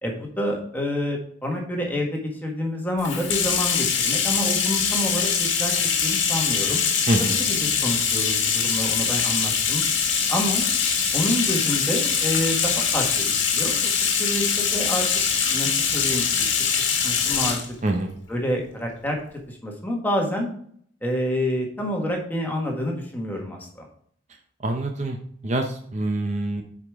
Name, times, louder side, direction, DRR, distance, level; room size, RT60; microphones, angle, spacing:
voice 1, 0.0-5.7 6.0-6.8 7.2-9.8 10.3-10.7 11.1-15.1 15.5-16.5 16.9-17.6 18.3-19.2 19.5-20.5 21.0-23.9, equal, 10° left, 0 dB, 1.5 m, -28 dB
Bathtub (filling or washing), 3.0-17.7, left 6 dB, 75° left, 1.5 m, -23 dB
voice 2, 7.1-7.4 17.8-18.1 24.6-25.2 25.4-26.6, right 1 dB, 35° right, 4 dB, 0.6 m, -25 dB
8.4 x 5.0 x 3.6 m, 0.63 s
head